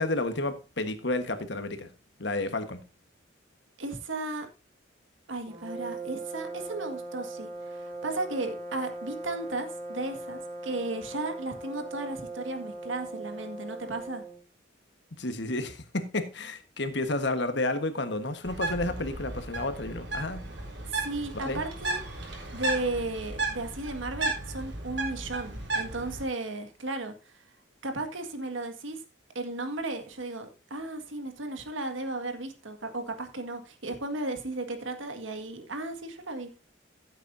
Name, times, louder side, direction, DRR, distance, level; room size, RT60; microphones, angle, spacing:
voice 1, 0.0-1.9 2.2-2.8 15.2-20.4 21.3-21.6, left 2 dB, 65° left, 9 dB, 1.3 m, -31 dB
voice 2, 3.8-4.5 5.3-14.2 20.9-22.0 22.5-27.3 27.8-29.0 29.4-36.5, right 2 dB, 85° right, 7 dB, 1.8 m, -35 dB
sound 1, 5.5-14.4, right 2 dB, 35° right, 2.5 m, -39 dB
Bird, 18.4-26.2, right 2 dB, 65° right, 3.8 m, -34 dB
15.0 x 8.2 x 2.7 m, 0.30 s
head